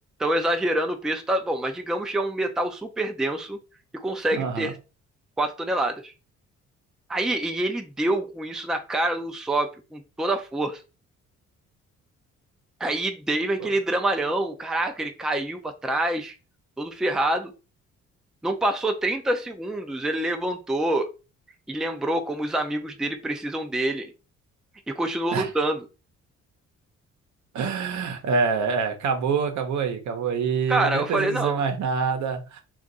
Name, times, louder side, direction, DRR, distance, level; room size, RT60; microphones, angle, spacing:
voice 1, 0.2-3.6 3.9-4.7 5.4-6.1 7.1-10.8 12.8-16.3 16.8-17.5 18.4-21.1 21.7-24.1 24.9-25.8 30.7-31.6, right 1 dB, ahead, 5 dB, 0.4 m, -26 dB
voice 2, 4.3-4.7 13.6-13.7 25.3-25.5 27.5-32.6, right 5 dB, 70° right, 6 dB, 0.8 m, -26 dB
2.5 x 2.4 x 3.9 m, 0.31 s
cardioid pair, 90°, 30 cm